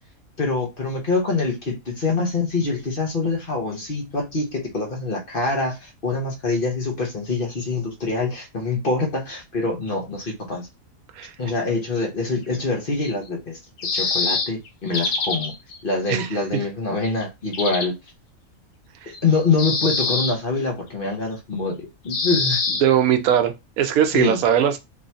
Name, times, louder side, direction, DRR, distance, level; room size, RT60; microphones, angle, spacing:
voice 1, 0.4-10.7 11.4-13.6 13.9-15.5 15.8-17.9 19.2-22.6 24.1-24.4, left 3 dB, 45° left, 1.2 m, -25 dB
sound 1, 12.5-12.6 13.0-13.1 13.8-15.8 16.1-16.2 16.6-16.7 17.0-17.2 17.5-17.9 19.1-20.3 22.1-22.8, left 4 dB, 85° left, 1.3 m, -25 dB
voice 2, 22.8-24.8, right 9 dB, 90° right, 1.1 m, -19 dB
3.8 x 3.1 x 2.7 m
omnidirectional pair, 1.5 m